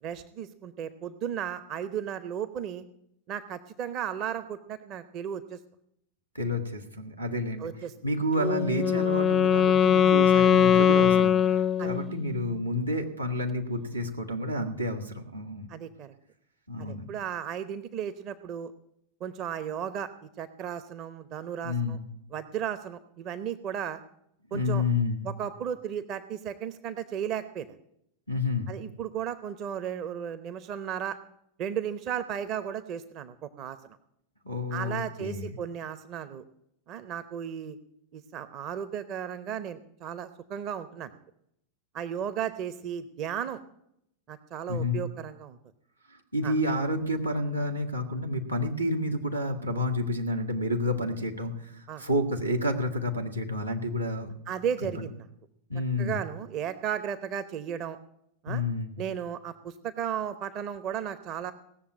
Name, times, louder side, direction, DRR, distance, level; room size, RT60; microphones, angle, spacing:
voice 1, 0.0-2.8 3.3-5.6 7.6-7.9 11.8-11.9 15.7-16.1 16.8-18.7 19.2-20.1 20.4-22.0 22.3-24.0 24.5-24.8 25.2-27.7 28.7-31.2 31.6-33.8 34.7-36.4 36.9-37.8 38.1-41.1 41.9-43.6 44.3-45.6 46.4-46.6 51.9-52.0 54.5-55.3 56.0-58.0 58.4-58.6 59.0-61.5, right 9 dB, 35° right, 13 dB, 0.8 m, -35 dB
voice 2, 6.3-7.7 8.0-15.7 16.7-17.1 21.6-22.0 24.5-25.3 28.3-28.7 34.5-35.6 44.7-45.0 46.3-54.3 54.8-55.0 55.7-56.2 58.5-59.0, left 1 dB, 85° right, 0 dB, 1.9 m, -30 dB
Wind instrument woodwind instrument, 8.4-12.3, left 8 dB, 25° left, 0.5 m, -21 dB
17.5 x 7.2 x 8.7 m, 0.75 s
figure-of-eight pair, 90°, 0 cm